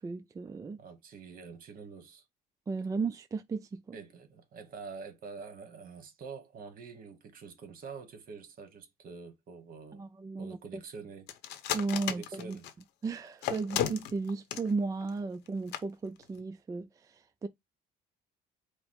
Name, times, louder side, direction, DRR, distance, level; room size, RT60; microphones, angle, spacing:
voice 1, 0.0-0.8 2.7-4.0 9.9-10.6 11.7-12.6 13.0-17.5, right 4 dB, 20° right, 0.3 m, -35 dB
voice 2, 0.8-2.2 3.9-10.0 10.4-11.3 12.0-12.7, right 5 dB, 55° right, 1.3 m, -46 dB
sound 1, 11.3-12.8 13.4-14.7 15.0-15.1 15.5-15.6 15.7-15.8 16.2-16.4, left 10 dB, 85° left, 0.8 m, -33 dB
5.0 x 2.0 x 4.6 m
cardioid pair, 110°, 17 cm